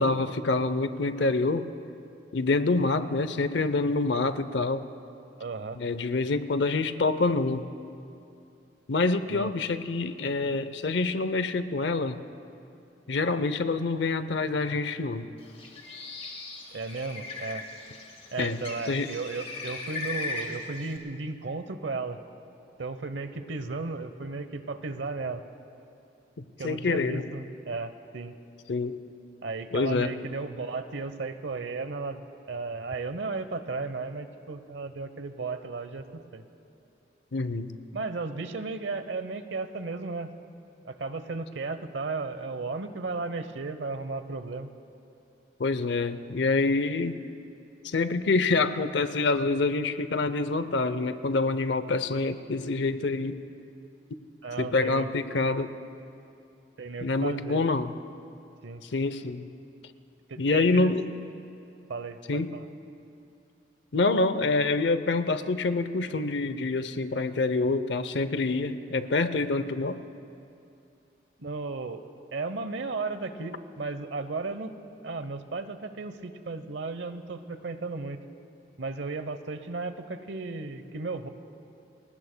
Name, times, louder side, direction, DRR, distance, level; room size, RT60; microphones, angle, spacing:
voice 1, 0.0-1.7 2.3-4.9 5.8-7.7 8.9-12.2 13.1-15.3 18.4-18.6 18.9-19.1 26.6-27.2 28.7-29.0 29.7-30.2 37.3-37.7 45.6-47.2 47.8-53.4 54.6-55.7 57.0-57.9 58.8-59.5 60.4-61.1 62.3-62.5 63.9-70.0, left 3 dB, 75° left, 12 dB, 0.7 m, -26 dB
voice 2, 5.4-5.8 9.3-9.5 16.7-17.7 18.3-22.2 22.8-25.4 26.6-28.4 29.4-36.4 37.9-40.3 40.8-44.7 54.4-55.1 56.8-57.6 58.6-58.8 60.3-60.9 61.9-62.6 71.4-72.0 72.3-74.8 75.0-78.2 78.8-81.3, right 3 dB, 80° right, 10 dB, 0.9 m, -35 dB
Bird, 15.4-21.0, left 3 dB, 35° left, 1.6 m, -38 dB
30.0 x 21.0 x 2.2 m, 2.7 s
head